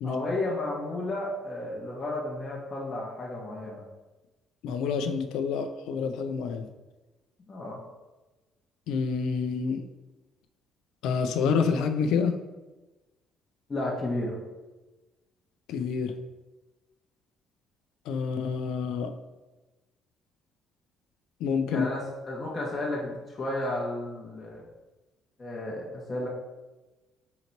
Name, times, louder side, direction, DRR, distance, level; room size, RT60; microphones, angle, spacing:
voice 1, 0.0-3.8 7.5-7.8 13.7-14.4 21.7-24.6 25.4-26.3, left 2 dB, 25° left, -4 dB, 0.8 m, -32 dB
voice 2, 4.6-6.7 8.9-9.8 11.0-12.4 15.7-16.1 18.1-19.1 21.4-21.9, left 5 dB, 85° left, 8 dB, 0.4 m, -28 dB
3.9 x 2.9 x 4.4 m, 1.1 s
cardioid pair, 125°, 0 cm